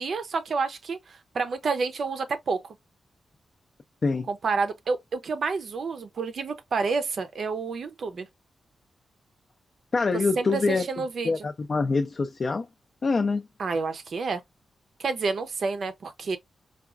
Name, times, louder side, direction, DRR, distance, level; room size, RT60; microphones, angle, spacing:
voice 1, 0.0-2.7 4.3-8.3 10.4-11.3 13.6-14.4 15.0-16.4, right 4 dB, 55° right, 0.5 m, -29 dB
voice 2, 9.9-10.8 11.2-12.7 13.0-13.5, left 4 dB, 35° left, 0.4 m, -25 dB
4.7 x 2.3 x 2.3 m
wide cardioid pair, 170°, 0 cm